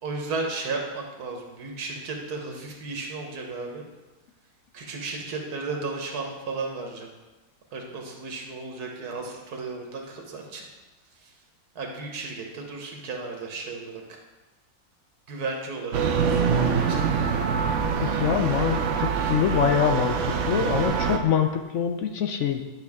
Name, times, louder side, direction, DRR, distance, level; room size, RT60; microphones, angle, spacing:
voice 1, 0.0-3.8 4.7-7.1 7.7-10.7 11.2-11.3 11.7-14.2 15.3-16.5 16.9-17.3 19.1-19.4, right 3 dB, 85° right, 2 dB, 1.6 m, -34 dB
sound 1, 15.9-21.2, right 6 dB, 60° right, 0.9 m, -25 dB
voice 2, 18.0-22.6, left 8 dB, 65° left, 6 dB, 0.8 m, -25 dB
10.0 x 5.8 x 3.6 m, 1.1 s
omnidirectional pair, 1.6 m